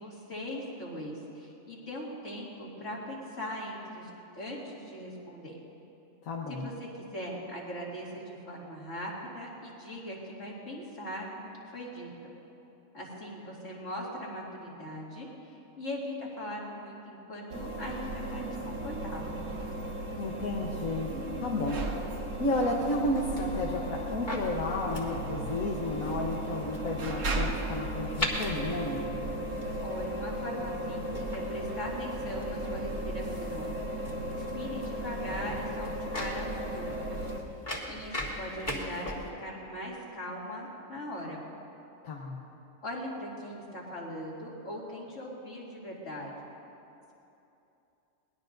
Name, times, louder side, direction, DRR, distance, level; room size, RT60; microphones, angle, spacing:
voice 1, 0.0-4.1 4.3-5.6 6.5-6.7 7.1-12.1 12.9-15.3 15.8-19.5 29.8-33.7 34.3-36.9 37.9-41.4 42.8-46.5, equal, 60° left, -5 dB, 3.1 m, -40 dB
voice 2, 6.2-6.7 20.2-21.1 21.4-21.8 22.4-29.2 42.0-42.4, left 2 dB, 80° left, -2 dB, 1.5 m, -32 dB
sound 1, 17.5-37.4, right 1 dB, 65° right, 1.5 m, -36 dB
sound 2, 23.2-39.3, left 1 dB, 35° left, 2.0 m, -41 dB
23.0 x 19.5 x 2.6 m, 2.9 s
omnidirectional pair, 1.4 m